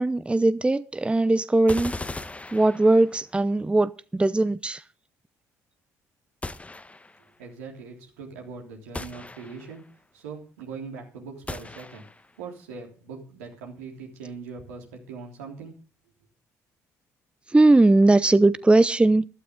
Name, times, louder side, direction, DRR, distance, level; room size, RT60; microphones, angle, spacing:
voice 1, 0.0-1.9 2.5-4.8 17.5-19.3, right 2 dB, 15° right, 0.7 m, -19 dB
sound 1, 1.7-3.3 6.4-7.3 8.9-9.9 11.5-12.3, left 2 dB, 15° left, 1.0 m, -38 dB
voice 2, 7.4-9.8 10.1-12.0 12.4-15.7, right 5 dB, 90° right, 3.4 m, -41 dB
15.0 x 12.0 x 3.7 m
hypercardioid pair, 55°, 8 cm